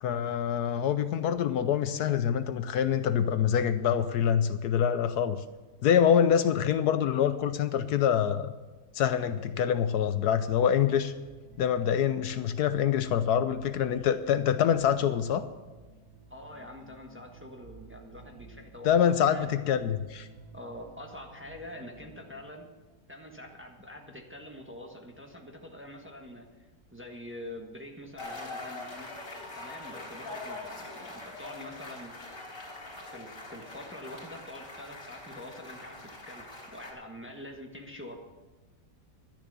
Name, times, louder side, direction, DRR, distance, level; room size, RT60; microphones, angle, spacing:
voice 1, 0.0-5.4 5.8-8.5 8.9-11.1 11.6-15.4 18.8-20.3, left 8 dB, 75° left, 11 dB, 1.1 m, -25 dB
sound 1, 9.9-22.4, right 3 dB, 65° right, 2.8 m, -54 dB
voice 2, 16.3-19.6 20.5-22.7 23.1-29.1 29.5-32.1 33.1-36.0 36.2-38.2, left 1 dB, 10° right, 2 dB, 1.2 m, -45 dB
sound 2, 28.2-36.9, left 2 dB, 55° left, 3.8 m, -43 dB
12.0 x 10.5 x 6.8 m, 1.2 s
omnidirectional pair, 1.8 m